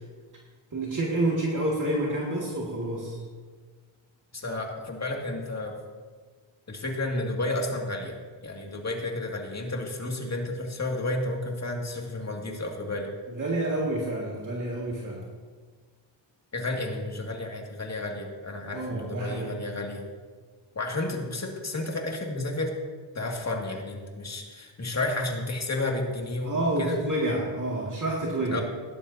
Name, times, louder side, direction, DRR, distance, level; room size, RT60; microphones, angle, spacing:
voice 1, 0.7-3.2 13.4-15.3 18.7-19.6 26.4-28.6, right 1 dB, 40° right, -3 dB, 2.2 m, -28 dB
voice 2, 4.3-5.8 6.7-13.1 16.5-20.0 20.8-22.7 23.1-27.0 28.5-28.6, left 2 dB, 35° left, 1 dB, 2.3 m, -32 dB
17.5 x 11.0 x 2.8 m, 1.5 s
cardioid pair, 80°, 48 cm